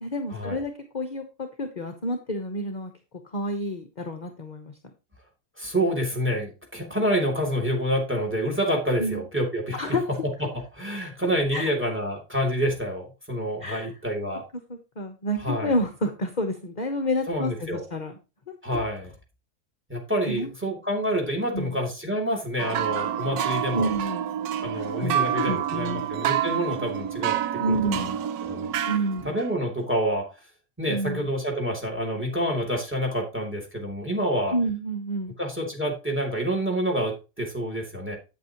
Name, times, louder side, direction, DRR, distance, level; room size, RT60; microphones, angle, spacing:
voice 1, 0.0-2.9 3.3-4.7 9.0-9.2 9.7-10.0 11.5-11.7 13.6-13.9 14.7-18.1 18.5-18.6 20.3-20.5 21.5-21.8 23.7-24.3 24.7-26.1 27.6-28.2 28.8-29.3 30.9-31.3 34.5-35.3, equal, 35° left, 6 dB, 1.0 m, -29 dB
voice 2, 5.6-10.0 10.4-14.4 15.4-15.7 17.3-17.9 18.6-19.1 19.9-23.9 24.6-28.1 28.4-28.7 29.2-30.3 30.8-34.5 35.4-38.2, equal, 5° right, 2 dB, 2.7 m, -28 dB
sound 1, 22.6-29.5, right 10 dB, 75° right, 1.2 m, -28 dB
8.5 x 8.4 x 2.9 m, 0.30 s
omnidirectional pair, 1.7 m